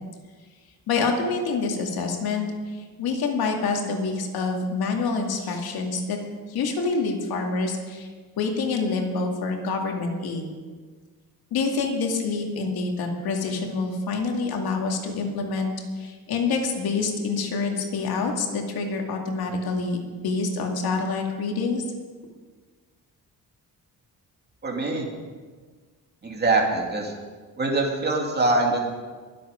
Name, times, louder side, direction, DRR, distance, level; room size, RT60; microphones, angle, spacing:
voice 1, 0.9-6.2 6.5-8.1 8.4-10.5 11.5-20.0 20.2-21.8, left 4 dB, 80° left, 2 dB, 2.4 m, -27 dB
voice 2, 24.6-25.1 26.2-27.1 27.6-28.8, right 2 dB, 25° right, 0 dB, 2.5 m, -23 dB
23.0 x 8.0 x 5.2 m, 1.5 s
cardioid pair, 150°, 36 cm